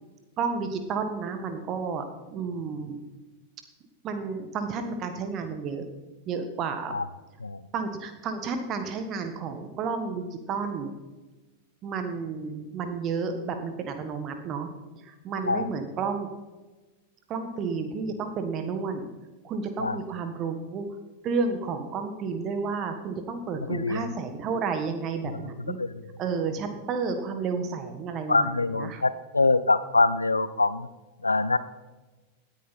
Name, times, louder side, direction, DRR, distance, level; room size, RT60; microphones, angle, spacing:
voice 1, 0.4-3.0 4.0-5.8 6.3-6.9 7.7-10.9 11.8-14.7 15.0-16.3 17.3-19.1 19.4-20.8 21.2-25.8 26.2-29.0, right 5 dB, 35° right, 7 dB, 1.5 m, -31 dB
voice 2, 23.7-24.0 25.8-25.9 28.3-30.9 31.2-31.6, left 3 dB, 80° left, 16 dB, 0.6 m, -24 dB
17.5 x 9.8 x 4.2 m, 1.2 s
figure-of-eight pair, 90°, 0 cm